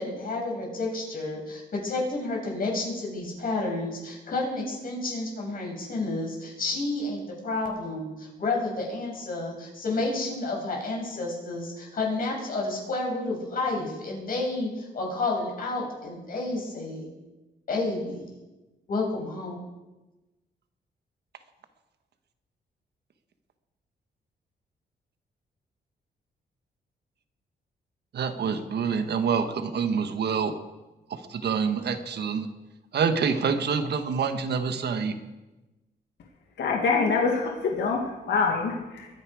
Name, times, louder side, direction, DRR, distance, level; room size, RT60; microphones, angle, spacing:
voice 1, 0.0-17.1 17.7-18.3 18.9-19.6, left 2 dB, 55° left, -1 dB, 6.2 m, -30 dB
voice 2, 28.1-30.5 31.1-32.5 32.9-35.1, right 6 dB, 70° right, 8 dB, 1.4 m, -26 dB
voice 3, 36.6-39.1, left 4 dB, 75° left, 0 dB, 2.1 m, -25 dB
22.5 x 9.9 x 4.9 m, 1.1 s
cardioid pair, 105°, 18 cm